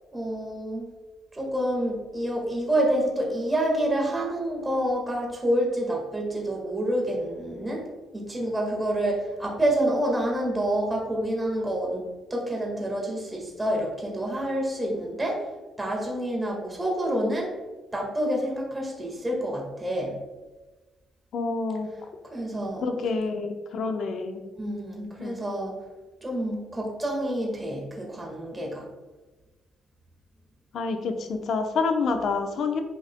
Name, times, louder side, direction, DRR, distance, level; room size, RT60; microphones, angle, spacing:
voice 1, 0.1-0.8 1.3-17.6 17.9-20.2 22.3-22.8 24.6-25.8 26.2-28.9, right 1 dB, 20° right, -1 dB, 1.6 m, -28 dB
voice 2, 21.3-21.9 22.8-24.5 25.2-25.4 30.7-32.8, left 4 dB, 65° left, 6 dB, 0.8 m, -28 dB
8.6 x 5.2 x 2.2 m, 1.2 s
cardioid pair, 90°, 0 cm